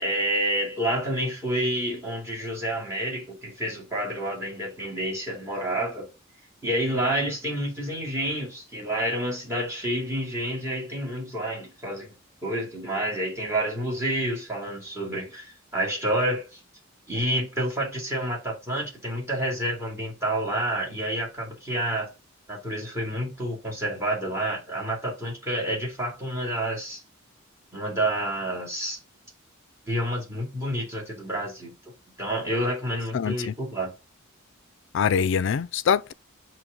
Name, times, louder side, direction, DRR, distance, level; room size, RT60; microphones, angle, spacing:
voice 1, 0.0-6.1 6.6-12.1 12.4-16.6 17.1-22.1 22.5-27.0 27.7-29.0 29.9-31.7 32.2-33.9, right 1 dB, 15° right, 2.3 m, -29 dB
voice 2, 33.1-33.5 34.9-36.1, left 7 dB, 60° left, 0.4 m, -24 dB
6.1 x 3.2 x 5.1 m
head